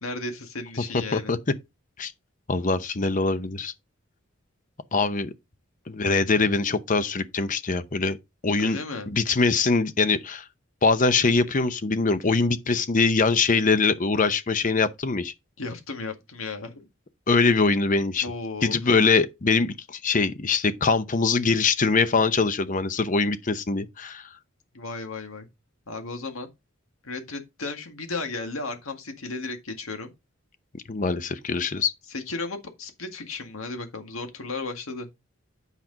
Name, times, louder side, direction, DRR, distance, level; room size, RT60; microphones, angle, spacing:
voice 1, 0.0-1.3 8.6-9.1 15.6-16.9 18.2-18.8 24.7-25.5 25.9-26.5 27.0-30.1 32.1-35.1, left 3 dB, 90° left, 1.9 m, -34 dB
voice 2, 0.9-1.4 2.0-2.1 2.5-3.7 4.9-5.3 5.9-8.2 8.4-8.8 9.1-10.4 10.8-15.3 17.3-18.3 18.6-24.3 30.7-31.9, left 4 dB, 40° left, 0.7 m, -23 dB
8.3 x 6.0 x 3.9 m
head